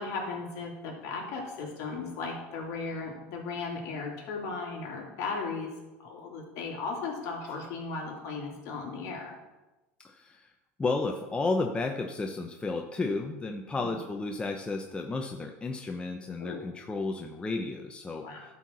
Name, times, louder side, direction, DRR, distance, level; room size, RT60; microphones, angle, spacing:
voice 1, 0.0-5.7 6.0-9.4 13.7-13.9 16.4-16.6 18.2-18.4, left 4 dB, 55° left, -1 dB, 2.9 m, -36 dB
voice 2, 10.0-10.5 10.8-18.2, left 3 dB, 15° left, 3 dB, 0.7 m, -32 dB
12.0 x 4.5 x 6.2 m, 1.1 s
supercardioid pair, 110°, 7 cm